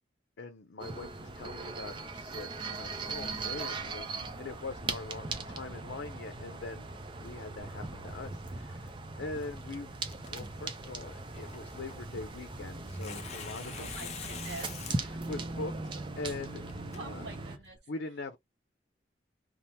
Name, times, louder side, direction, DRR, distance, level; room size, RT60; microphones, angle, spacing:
voice 1, 0.4-8.9 9.2-10.0 10.3-13.9 14.3-14.4 15.0-15.7 16.1-16.7 17.0-17.3 17.9-18.4, left 3 dB, 90° left, 0.5 m, -42 dB
sound 1, 0.8-17.6, right 3 dB, 25° right, 0.4 m, -39 dB
Tearing, 10.0-17.8, left 7 dB, 35° left, 0.5 m, -48 dB
voice 2, 13.7-14.9 15.2-15.3 16.9-17.8, right 3 dB, 75° right, 0.6 m, -46 dB
2.8 x 2.0 x 3.1 m
head